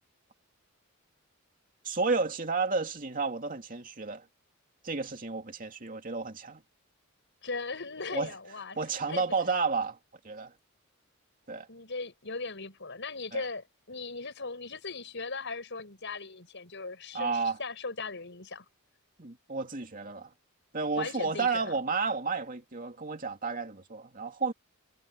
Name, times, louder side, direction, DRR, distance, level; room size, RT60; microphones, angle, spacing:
voice 1, 1.8-4.2 4.8-6.6 8.1-8.3 8.8-10.0 10.2-10.5 11.5-11.7 13.3-13.4 17.1-17.6 19.2-20.3 20.7-24.5, right 4 dB, 40° right, 2.6 m, -31 dB
voice 2, 7.4-8.8 9.1-9.2 11.7-18.7 20.9-21.7, left 3 dB, 55° left, 6.9 m, -38 dB
head